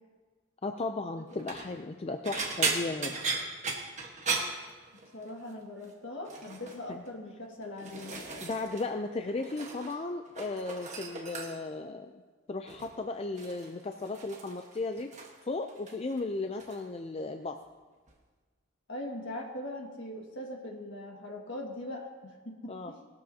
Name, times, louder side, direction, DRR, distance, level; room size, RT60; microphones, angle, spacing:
voice 1, 0.6-3.1 6.9-7.0 8.4-12.1 12.5-15.1 15.5-17.6 22.7-22.9, left 3 dB, 30° left, 5 dB, 0.4 m, -35 dB
sound 1, 1.3-1.7 2.2-5.3 5.6-5.9 6.3-6.8 7.4-8.9 9.1-10.0 10.3-11.8 12.7-13.0 13.4-15.4 15.7-16.2 16.6-16.8 18.1-18.2, right 4 dB, 35° right, 1.3 m, -36 dB
voice 2, 5.1-8.2 18.9-23.1, left 1 dB, 60° left, 0 dB, 1.9 m, -41 dB
18.5 x 12.5 x 2.8 m, 1.4 s
head